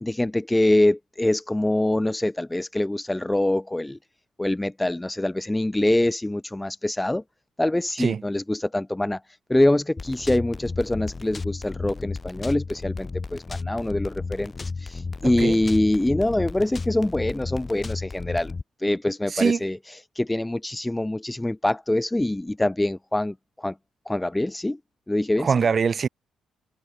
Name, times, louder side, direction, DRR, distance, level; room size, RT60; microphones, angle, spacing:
voice 1, 0.0-4.0 4.4-7.2 7.6-9.2 9.5-18.5 18.8-19.8 20.2-23.7 24.1-24.8 25.1-25.5, left 1 dB, 10° left, 0.3 m, -24 dB
sound 1, 10.0-18.6, left 4 dB, 30° left, 2.0 m, -33 dB
voice 2, 15.2-15.6 19.3-19.6 25.4-26.1, right 6 dB, 40° right, 1.3 m, -23 dB
cardioid pair, 90°, 0 cm